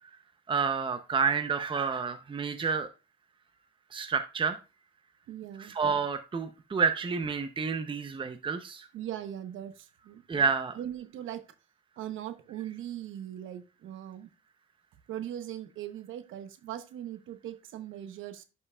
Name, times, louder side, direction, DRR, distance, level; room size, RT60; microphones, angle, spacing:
voice 1, 0.5-2.9 3.9-4.6 5.6-8.9 10.3-10.7, right 5 dB, 25° right, 8 dB, 0.7 m, -29 dB
voice 2, 5.3-5.8 8.9-10.2 10.8-11.5 12.0-14.3 15.1-18.4, right 11 dB, 80° right, 11 dB, 0.9 m, -40 dB
11.0 x 5.6 x 2.3 m, 0.31 s
cardioid pair, 90°, 20 cm